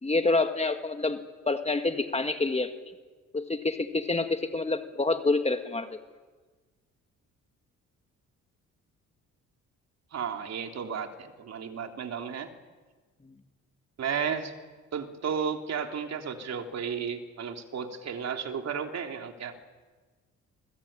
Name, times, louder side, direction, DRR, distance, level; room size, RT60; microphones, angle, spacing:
voice 1, 0.0-1.2 1.5-2.7 3.3-6.0, left 3 dB, 20° left, 7 dB, 2.0 m, -27 dB
voice 2, 10.1-12.5 14.0-14.5 14.9-19.5, right 7 dB, 60° right, 4 dB, 3.3 m, -33 dB
29.0 x 21.5 x 8.9 m, 1.3 s
cardioid pair, 90°, 30 cm